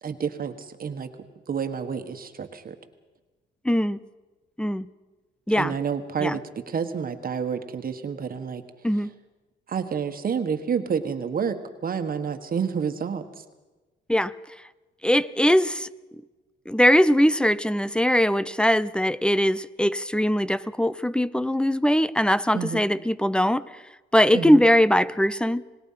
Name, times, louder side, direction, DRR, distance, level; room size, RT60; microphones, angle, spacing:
voice 1, 0.0-1.1 1.5-2.7 5.6-8.6 9.7-13.4 22.5-22.8 24.3-24.6, right 6 dB, 45° right, 8 dB, 1.6 m, -29 dB
voice 2, 3.6-4.0 4.6-4.9 5.5-5.7 6.2-6.4 8.8-9.1 14.1-14.3 15.0-15.9 16.7-23.6 24.1-25.6, equal, 5° left, 18 dB, 0.6 m, -21 dB
25.5 x 20.0 x 5.8 m, 1.2 s
cardioid pair, 90°, 20 cm